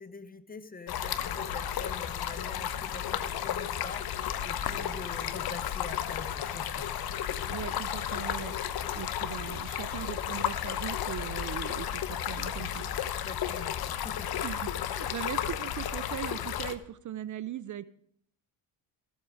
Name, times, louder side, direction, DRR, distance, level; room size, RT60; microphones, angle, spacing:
voice 1, 0.0-6.9 13.2-14.4, left 4 dB, 20° left, 13 dB, 0.8 m, -45 dB
Stream, 0.9-16.8, left 9 dB, 60° left, 1.0 m, -33 dB
voice 2, 7.5-12.8 14.4-17.9, right 11 dB, 45° right, 17 dB, 0.5 m, -39 dB
15.0 x 7.9 x 5.0 m, 0.67 s
cardioid pair, 90°, 43 cm